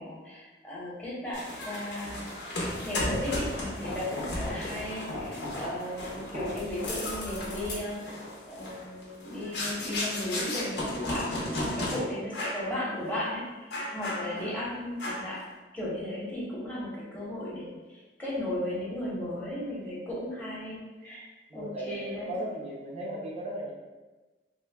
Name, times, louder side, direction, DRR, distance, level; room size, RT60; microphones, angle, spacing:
voice 1, 0.0-8.2 8.5-15.4 15.7-17.7 18.2-21.2 21.5-22.4, left 1 dB, 10° left, -7 dB, 0.9 m, -35 dB
sound 1, 1.3-12.0 12.3-12.7 13.0-13.2 13.7-14.6 15.0-15.4, left 1 dB, 65° left, 0.7 m, -35 dB
voice 2, 14.4-14.8 21.5-23.7, right 1 dB, 40° right, -5 dB, 0.5 m, -37 dB
3.1 x 2.2 x 3.4 m, 1.2 s
head